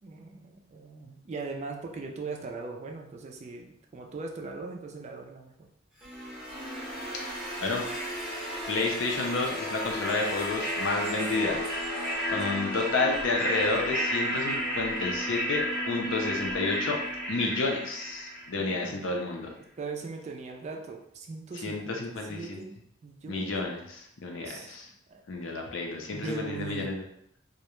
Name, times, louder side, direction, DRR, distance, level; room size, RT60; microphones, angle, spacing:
voice 1, 0.0-5.7 11.2-11.7 11.9-12.3 18.6-19.0 19.8-22.0 22.3-22.7 23.0-23.5 24.4-24.7 25.1-25.2 26.1-27.0, right 4 dB, 35° right, 2 dB, 0.3 m, -40 dB
sound 1, 6.0-18.9, equal, 5° right, 0.8 m, -33 dB
voice 2, 7.2-7.8 8.7-11.6 11.9-17.0 17.3-19.5 21.6-22.6 23.3-24.9 25.3-27.0, left 3 dB, 75° left, 1 dB, 0.5 m, -31 dB
2.4 x 2.1 x 2.9 m, 0.73 s
head